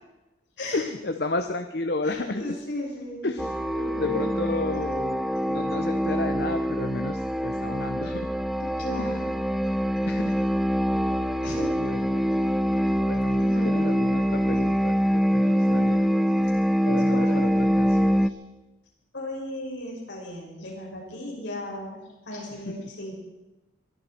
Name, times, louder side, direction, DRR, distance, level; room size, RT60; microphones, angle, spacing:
voice 1, 0.7-2.4 3.2-3.5 4.0-8.3 9.0-9.1 10.1-10.4 10.9-11.0 11.8-12.2 12.7-12.8 13.1-16.0 16.8-17.3 17.8-18.3, left 2 dB, 55° left, 7 dB, 0.8 m, -32 dB
voice 2, 2.0-3.3 3.7-4.6 8.6-9.4 11.4-11.7 12.8-12.9 13.4-13.8 15.4-15.9 16.8-17.7 18.2-18.3 19.1-23.1, left 1 dB, 75° left, -2 dB, 6.4 m, -36 dB
sound 1, 3.4-18.3, equal, ahead, 0.5 m, -24 dB
22.5 x 13.0 x 4.5 m, 1.0 s
head